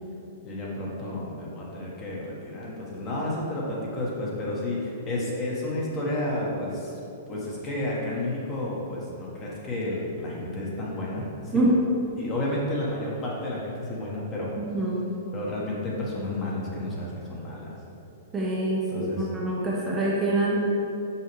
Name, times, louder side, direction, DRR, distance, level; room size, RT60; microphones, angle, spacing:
voice 1, 0.4-6.9 7.3-11.6 12.2-14.5 15.3-17.7 18.9-19.3, left 1 dB, 25° left, -5 dB, 1.3 m, -31 dB
voice 2, 14.6-15.0 18.3-20.6, right 1 dB, 15° right, -5 dB, 0.8 m, -25 dB
5.6 x 5.6 x 3.2 m, 2.8 s
hypercardioid pair, 145°, 0 cm